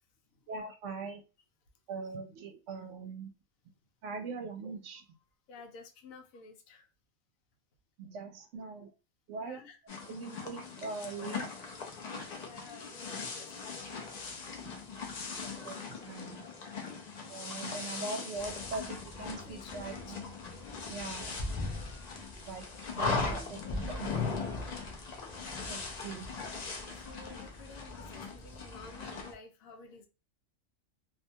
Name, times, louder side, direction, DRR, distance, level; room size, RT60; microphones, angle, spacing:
voice 1, 0.5-1.2 1.9-3.3 4.0-5.0 8.0-8.9 9.3-9.6 10.1-11.6 14.6-14.7 15.6-15.8 16.1-16.5 17.3-20.2 20.9-21.5 22.4-24.2 25.7-26.3, right 4 dB, 70° right, 0.8 m, -41 dB
voice 2, 5.5-6.9 9.4-9.8 12.4-14.1 17.5-17.8 19.2-20.1 25.3-25.5 27.0-30.1, left 4 dB, 85° left, 1.0 m, -52 dB
sound 1, 9.9-29.3, left 4 dB, 70° left, 0.4 m, -39 dB
2.5 x 2.1 x 2.7 m
omnidirectional pair, 1.4 m